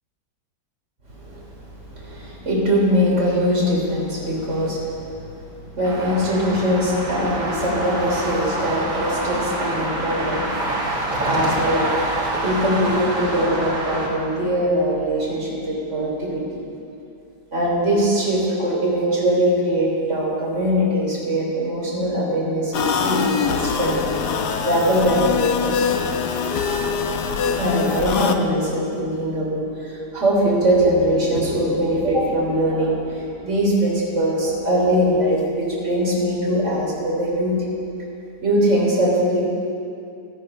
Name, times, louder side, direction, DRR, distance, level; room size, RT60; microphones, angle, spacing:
voice 1, 1.2-1.5 1.9-16.6 17.5-24.0 24.6-25.9 27.5-37.6 38.4-39.4, equal, 40° right, -4 dB, 4.0 m, -22 dB
sound 1, 5.8-14.1, right 1 dB, 75° right, 3.0 m, -26 dB
sound 2, 22.7-28.4, left 6 dB, 70° left, 1.5 m, -23 dB
17.5 x 13.0 x 5.5 m, 2.5 s
omnidirectional pair, 1.8 m